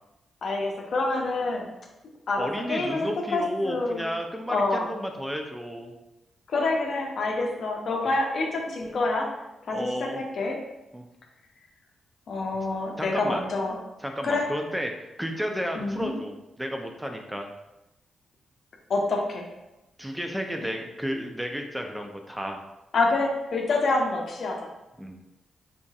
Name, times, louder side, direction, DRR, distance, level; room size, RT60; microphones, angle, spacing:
voice 1, 0.4-1.7 2.3-4.1 4.5-4.9 6.5-9.3 9.7-10.6 12.3-13.7 14.2-14.5 15.7-16.1 18.9-19.5 20.6-20.7 22.9-24.7, left 3 dB, 65° left, 1 dB, 0.7 m, -27 dB
voice 2, 2.4-5.9 8.1-8.2 9.7-10.2 10.9-11.0 13.0-13.4 14.0-14.9 15.2-17.5 20.0-22.6 25.0-25.2, equal, 10° right, 3 dB, 0.6 m, -32 dB
3.8 x 3.5 x 2.4 m, 0.95 s
hypercardioid pair, 40°, 0 cm